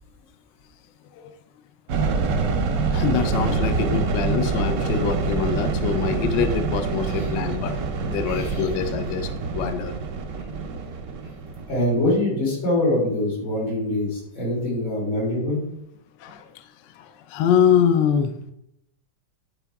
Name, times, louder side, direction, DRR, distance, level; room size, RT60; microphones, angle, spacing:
sound 1, 1.9-12.1, right 4 dB, 75° right, 0.7 m, -26 dB
voice 1, 2.9-10.0 16.2-16.7 16.9-18.3, left 7 dB, 75° left, 9 dB, 1.1 m, -24 dB
voice 2, 8.2-8.6 11.7-15.6, left 1 dB, 90° left, -5 dB, 4.1 m, -24 dB
9.9 x 4.5 x 3.4 m, 0.79 s
omnidirectional pair, 2.2 m